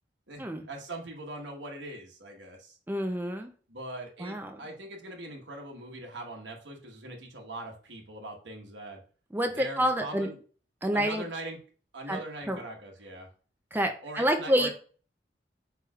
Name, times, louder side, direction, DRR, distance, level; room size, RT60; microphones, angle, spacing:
voice 1, 0.3-2.8 3.7-9.0 9.5-10.4 10.9-11.6 11.9-13.3 14.0-14.7, right 1 dB, 85° right, 1 dB, 1.2 m, -41 dB
voice 2, 2.9-3.5 4.2-4.6 9.3-10.3 10.8-11.2 12.1-12.2 12.5-12.6 13.7-14.7, equal, 10° right, 5 dB, 0.5 m, -28 dB
4.7 x 4.6 x 2.3 m, 0.40 s
head